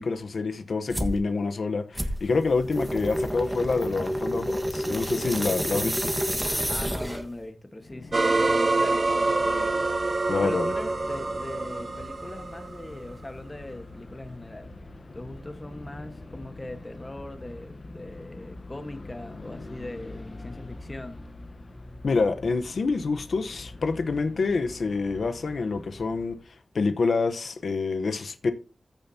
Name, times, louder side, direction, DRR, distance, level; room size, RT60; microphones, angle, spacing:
voice 1, 0.0-6.1 10.3-10.7 22.0-28.5, left 4 dB, 75° left, 0.9 m, -27 dB
sound 1, 0.9-1.2 1.9-7.4, equal, 10° right, 1.5 m, -29 dB
voice 2, 6.7-9.9 10.4-14.7 15.1-21.2, left 1 dB, 25° left, 1.4 m, -40 dB
sound 2, 7.8-26.5, left 2 dB, 45° left, 1.1 m, -44 dB
sound 3, 8.1-13.1, right 3 dB, 45° right, 0.9 m, -26 dB
14.5 x 7.0 x 2.8 m
wide cardioid pair, 110°, 0 cm